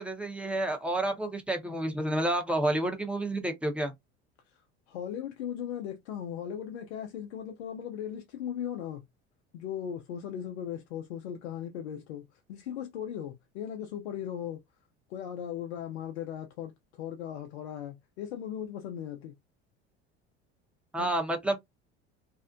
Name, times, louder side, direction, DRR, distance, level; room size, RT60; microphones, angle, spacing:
voice 1, 0.0-3.9 20.9-21.6, right 1 dB, 5° right, 0.8 m, -30 dB
voice 2, 4.9-9.0 9.5-14.6 15.1-19.4 21.0-21.1, left 9 dB, 85° left, 0.5 m, -38 dB
2.6 x 2.1 x 2.5 m
hypercardioid pair, 75°, 32 cm